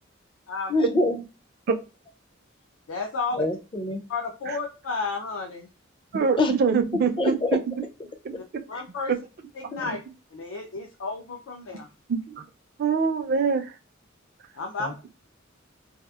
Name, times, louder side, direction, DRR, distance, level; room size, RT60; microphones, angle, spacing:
voice 1, 0.7-1.2 3.4-4.0 6.4-6.5 7.2-7.6 8.3-8.4 8.7-8.8 9.7-9.9 14.8-14.9, left 2 dB, 25° left, 6 dB, 0.4 m, -25 dB
voice 2, 2.9-3.5 4.1-5.7 8.4-9.1 9.5-10.0 10.3-11.9 14.5-15.0, left 4 dB, 85° left, 2 dB, 0.4 m, -32 dB
voice 3, 6.1-7.6 8.2-8.6 9.9-10.0 12.1-12.4 12.8-13.6, right 5 dB, 50° right, 8 dB, 0.4 m, -24 dB
2.8 x 2.3 x 2.3 m, 0.30 s
head